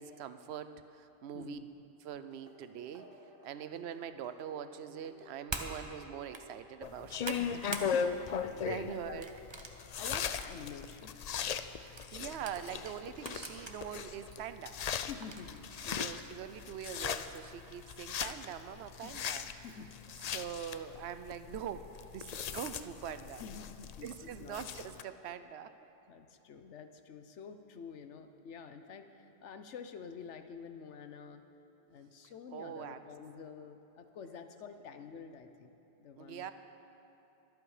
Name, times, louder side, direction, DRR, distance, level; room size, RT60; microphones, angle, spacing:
voice 1, 0.0-1.6 2.0-3.1 3.4-7.4 8.5-9.3 11.8-14.8 16.0-19.5 20.3-23.4 24.0-25.7 32.5-33.0 36.2-36.5, right 9 dB, 70° right, 11 dB, 0.9 m, -43 dB
voice 2, 1.3-1.7 7.4-8.3 8.9-9.3 10.0-11.1 15.1-16.1 19.0-19.2 19.6-20.4 23.4-24.6 26.1-31.4 31.9-36.5, left 6 dB, 85° left, 8 dB, 1.2 m, -48 dB
sound 1, 2.3-7.5, equal, 55° right, 1.6 m, -58 dB
sound 2, 5.5-5.7 6.2-6.4 6.8-7.9 8.3-8.6 9.2-10.5 11.0-11.1 12.0-13.8 14.3-14.4 15.2-15.6, right 3 dB, 25° right, 0.8 m, -43 dB
sound 3, 6.8-25.0, left 7 dB, 60° left, 0.4 m, -39 dB
23.5 x 8.5 x 4.9 m, 3.0 s
omnidirectional pair, 1.2 m